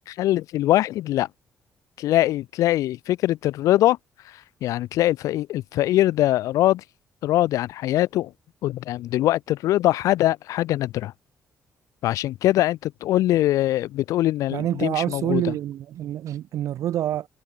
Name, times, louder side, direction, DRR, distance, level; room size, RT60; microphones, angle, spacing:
voice 1, 0.1-1.3 2.0-4.0 4.6-6.8 7.2-8.3 8.6-11.1 12.0-15.5, left 14 dB, 85° left, 3.8 m, -22 dB
voice 2, 14.5-17.3, right 12 dB, 75° right, 6.5 m, -27 dB
cardioid pair, 90°, 5 cm